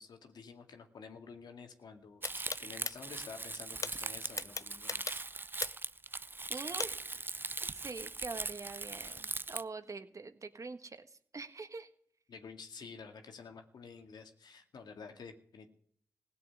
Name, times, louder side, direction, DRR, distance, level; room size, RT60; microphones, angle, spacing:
voice 1, 0.0-5.2 12.3-15.7, left 5 dB, 85° left, 5 dB, 2.1 m, -50 dB
sound 1, 2.2-2.9 3.8-3.9 4.4-5.9 6.8-6.9, left 4 dB, 50° left, 0.7 m, -37 dB
Crumpling crinkling, 2.2-9.6, right 3 dB, 30° right, 0.6 m, -40 dB
voice 2, 6.5-7.1 7.6-11.9, right 3 dB, 50° right, 9 dB, 1.6 m, -44 dB
16.5 x 6.9 x 9.5 m, 0.62 s
cardioid pair, 50°, 7 cm